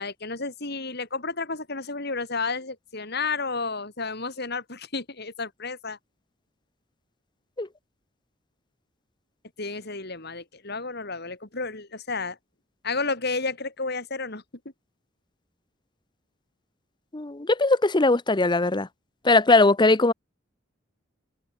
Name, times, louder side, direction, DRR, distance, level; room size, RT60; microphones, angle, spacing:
voice 1, 0.0-6.0 9.6-12.4 12.8-14.4, left 4 dB, 55° left, 4.9 m, -31 dB
voice 2, 17.1-18.9 19.2-20.1, left 2 dB, 25° left, 0.8 m, -20 dB
open air
head